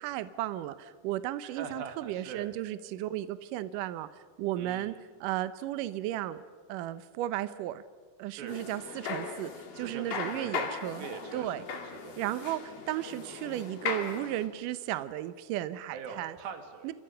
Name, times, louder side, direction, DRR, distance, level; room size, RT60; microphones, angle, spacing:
voice 1, 0.0-6.4 6.7-7.8 8.2-11.1 11.3-11.6 12.2-16.4 16.8-16.9, right 14 dB, 85° right, 13 dB, 1.9 m, -34 dB
voice 2, 1.4-2.5 4.6-4.9 8.3-8.6 9.8-10.6 11.0-12.2 15.9-16.9, right 6 dB, 65° right, 6 dB, 3.7 m, -43 dB
sound 1, 8.5-14.5, left 6 dB, 65° left, 4.1 m, -38 dB
28.5 x 26.0 x 5.7 m, 1.5 s
omnidirectional pair, 4.8 m